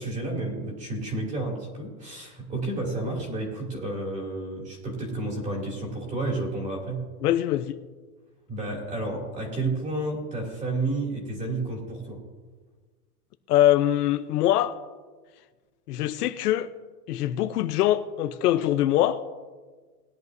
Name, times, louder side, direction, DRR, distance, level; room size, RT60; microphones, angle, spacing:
voice 1, 0.0-7.0 8.5-12.2, right 2 dB, 15° right, 2.8 m, -31 dB
voice 2, 7.2-7.8 13.5-14.8 15.9-16.7 17.1-19.2, left 13 dB, 80° left, 0.8 m, -23 dB
19.5 x 11.0 x 2.7 m
supercardioid pair, 175°, 46 cm